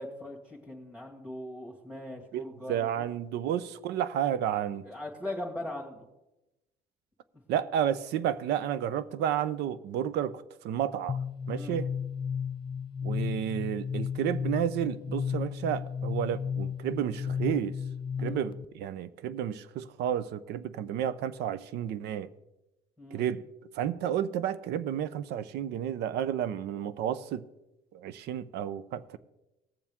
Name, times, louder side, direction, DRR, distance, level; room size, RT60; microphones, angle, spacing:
voice 1, 0.0-3.1 4.9-6.0 11.5-11.8 18.2-18.4 23.0-23.2, left 1 dB, 5° right, 1.9 m, -40 dB
voice 2, 2.3-4.9 7.5-11.2 11.5-11.9 13.0-17.8 18.2-22.3 23.1-23.4 23.7-27.4 27.9-29.2, right 10 dB, 80° right, 0.6 m, -31 dB
sound 1, 11.1-18.6, left 7 dB, 30° left, 0.4 m, -34 dB
18.5 x 7.2 x 3.6 m
cardioid pair, 110°, 17 cm